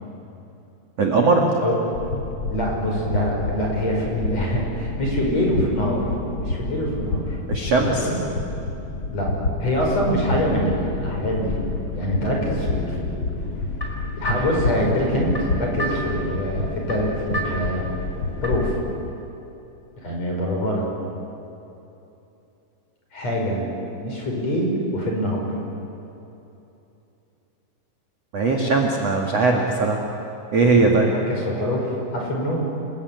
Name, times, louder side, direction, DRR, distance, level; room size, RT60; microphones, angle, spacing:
voice 1, 1.0-1.5 7.5-8.1 28.3-30.0 30.5-31.1, right 3 dB, 45° right, 0 dB, 2.3 m, -19 dB
sound 1, 1.9-18.8, left 3 dB, 70° left, 1.1 m, -29 dB
voice 2, 2.5-6.1 6.4-7.4 7.8-8.2 9.1-9.3 9.6-11.6 11.9-13.2 14.2-18.0 18.4-18.7 20.0-20.9 23.1-23.7 24.0-25.5 30.8-32.7, equal, 35° left, -1 dB, 6.4 m, -24 dB
sound 2, 13.4-18.8, right 1 dB, 5° left, 4.2 m, -34 dB
28.0 x 22.0 x 9.5 m, 2.9 s
omnidirectional pair, 5.4 m